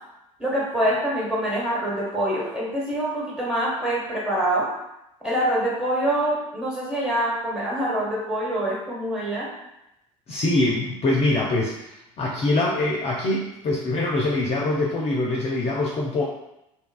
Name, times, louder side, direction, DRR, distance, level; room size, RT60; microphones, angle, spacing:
voice 1, 0.4-4.7 5.2-9.5, right 1 dB, 5° right, -6 dB, 1.2 m, -25 dB
voice 2, 10.3-16.2, left 2 dB, 35° left, -3 dB, 0.5 m, -24 dB
2.7 x 2.3 x 2.3 m, 0.87 s
hypercardioid pair, 65°, 18 cm